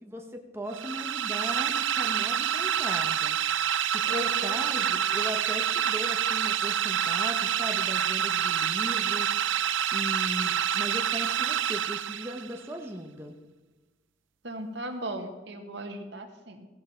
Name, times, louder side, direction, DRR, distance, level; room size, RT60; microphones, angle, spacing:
voice 1, 0.0-3.4 3.8-9.3 9.9-13.3, equal, 15° right, 3 dB, 0.9 m, -38 dB
sound 1, 0.7-12.6, right 9 dB, 85° right, 0.5 m, -27 dB
voice 2, 4.0-4.9 14.4-16.7, right 1 dB, 70° right, 5 dB, 1.6 m, -38 dB
16.0 x 11.0 x 4.4 m, 1.2 s
head